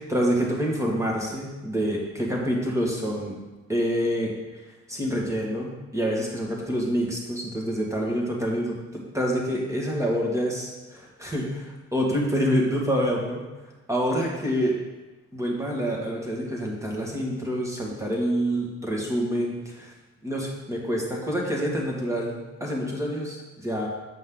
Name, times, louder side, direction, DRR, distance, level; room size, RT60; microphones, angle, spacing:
voice 1, 0.0-3.4 3.7-4.6 4.9-13.5 13.9-14.7 15.3-19.9 20.2-23.9, equal, 10° right, -2 dB, 1.9 m, -27 dB
7.6 x 5.2 x 3.8 m, 1.1 s
cardioid pair, 90°, 30 cm